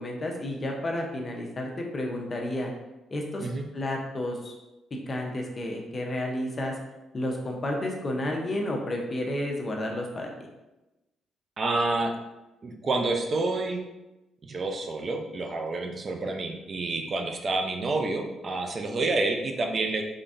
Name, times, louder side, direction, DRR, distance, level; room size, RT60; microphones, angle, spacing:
voice 1, 0.0-2.7 3.1-3.5 3.7-4.5 5.1-6.8 7.1-10.5 16.2-16.4, left 1 dB, 35° left, 1 dB, 0.7 m, -31 dB
voice 2, 11.6-12.2 12.6-13.8 14.4-20.0, right 2 dB, 40° right, 4 dB, 0.5 m, -28 dB
3.9 x 3.3 x 2.6 m, 0.99 s
cardioid pair, 90°, 0 cm